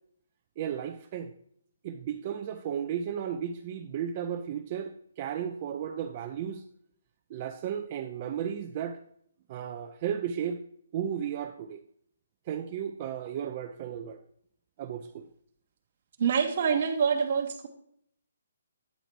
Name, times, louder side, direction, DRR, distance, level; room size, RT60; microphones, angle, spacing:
voice 1, 0.6-1.3 1.8-6.6 7.3-9.0 9.5-10.6 10.9-11.8 12.5-14.2 14.8-15.3, right 8 dB, 25° right, 6 dB, 0.4 m, -34 dB
voice 2, 16.2-17.7, right 6 dB, 45° right, 4 dB, 0.8 m, -26 dB
9.1 x 4.0 x 4.5 m, 0.67 s
hypercardioid pair, 170°, 0 cm